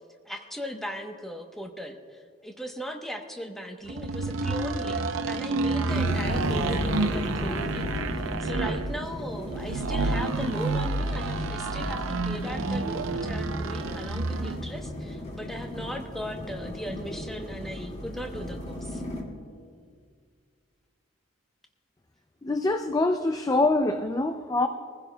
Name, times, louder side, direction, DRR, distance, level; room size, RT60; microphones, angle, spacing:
voice 1, 0.2-19.0, equal, ahead, 2 dB, 0.9 m, -38 dB
sound 1, 3.9-14.7, right 3 dB, 80° right, 0.6 m, -29 dB
sound 2, 5.9-19.2, left 1 dB, 35° left, 2.1 m, -36 dB
voice 2, 22.4-24.7, left 2 dB, 15° left, 7 dB, 0.4 m, -24 dB
23.5 x 15.5 x 2.2 m, 2.1 s
head